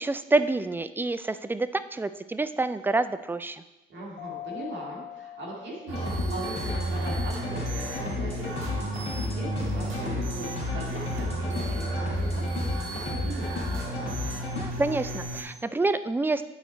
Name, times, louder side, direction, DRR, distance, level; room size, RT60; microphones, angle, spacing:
voice 1, 0.0-3.6 14.6-16.4, right 3 dB, 10° right, 13 dB, 0.3 m, -27 dB
voice 2, 3.9-8.7 9.1-13.6, right 2 dB, 65° right, -3 dB, 2.2 m, -40 dB
Mallet percussion, 4.2-6.7, left 11 dB, 85° left, 1.6 m, -42 dB
sound 1, 5.9-14.7, left 3 dB, 35° left, 2.6 m, -34 dB
sound 2, 5.9-15.4, right 1 dB, 85° right, 1.6 m, -33 dB
9.3 x 4.4 x 4.1 m, 1.0 s
cardioid pair, 90°, 20 cm